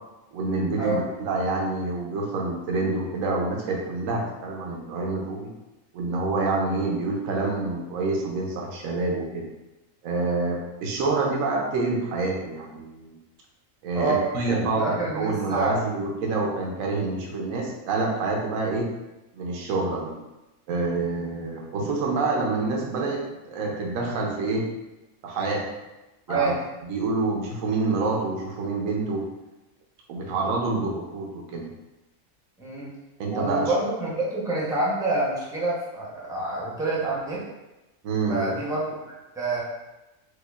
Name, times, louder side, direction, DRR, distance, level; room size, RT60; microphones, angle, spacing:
voice 1, 0.3-5.5 5.9-9.5 10.0-13.2 13.8-18.9 19.3-20.2 20.7-24.7 25.2-25.6 26.3-26.5 26.9-29.3 30.1-31.7 33.2-33.7 38.0-38.5, right 3 dB, 80° right, -1 dB, 1.1 m, -27 dB
voice 2, 13.9-15.8 26.3-26.6 32.6-32.9 33.3-37.4 38.3-39.6, right 2 dB, 5° right, -6 dB, 0.5 m, -27 dB
4.8 x 2.3 x 2.3 m, 1.0 s
omnidirectional pair, 1.4 m